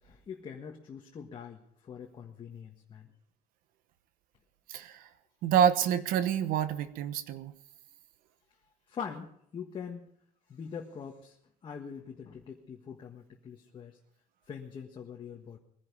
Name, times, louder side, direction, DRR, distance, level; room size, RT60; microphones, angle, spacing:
voice 1, 0.0-3.1 8.9-10.1 10.5-11.4 11.6-14.0 14.5-15.6, left 7 dB, 35° left, 1 dB, 1.6 m, -43 dB
voice 2, 4.7-5.0 5.4-7.5, right 8 dB, 75° right, 12 dB, 1.1 m, -27 dB
21.0 x 11.0 x 5.4 m, 0.70 s
cardioid pair, 135°, 15 cm